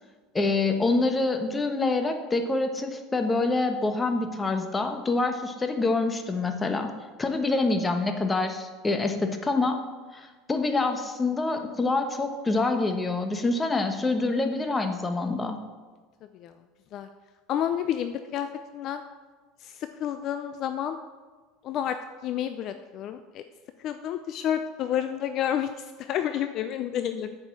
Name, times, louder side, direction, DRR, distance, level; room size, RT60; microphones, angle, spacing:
voice 1, 0.3-6.9 7.2-9.8 10.1-15.6, left 3 dB, 15° left, 6 dB, 1.1 m, -26 dB
voice 2, 17.5-18.5 18.7-19.0 19.6-21.0 21.6-23.4 23.8-27.4, left 10 dB, 50° left, 9 dB, 0.4 m, -30 dB
8.1 x 5.4 x 7.6 m, 1.4 s
supercardioid pair, 115°, 0 cm